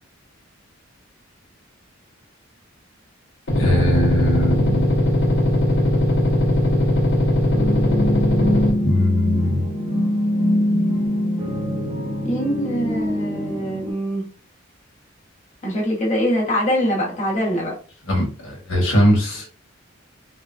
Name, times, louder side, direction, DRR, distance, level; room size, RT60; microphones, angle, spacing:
sound 1, 3.5-8.7, left 1 dB, 60° left, 1.0 m, -19 dB
voice 1, 3.6-4.8 8.8-9.6 18.1-19.5, equal, 80° left, -1 dB, 1.2 m, -20 dB
sound 2, 7.5-13.9, left 1 dB, 25° right, 0.9 m, -23 dB
voice 2, 12.2-14.3 15.6-17.8, equal, 35° left, -4 dB, 1.1 m, -23 dB
3.4 x 2.2 x 2.6 m, 0.39 s
head